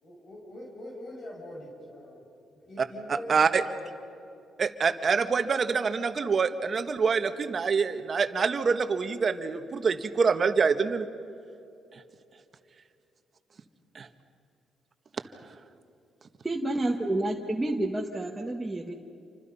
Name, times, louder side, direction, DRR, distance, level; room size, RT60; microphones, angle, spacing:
voice 1, 0.0-2.3 2.5-3.9, left 1 dB, 55° left, -2 dB, 6.1 m, -43 dB
voice 2, 3.3-3.6 4.6-11.1 13.9-14.1, right 5 dB, 45° right, 9 dB, 1.5 m, -25 dB
voice 3, 16.4-18.9, right 1 dB, 10° right, -1 dB, 1.7 m, -29 dB
28.5 x 25.0 x 5.7 m, 2.6 s
cardioid pair, 90°, 0 cm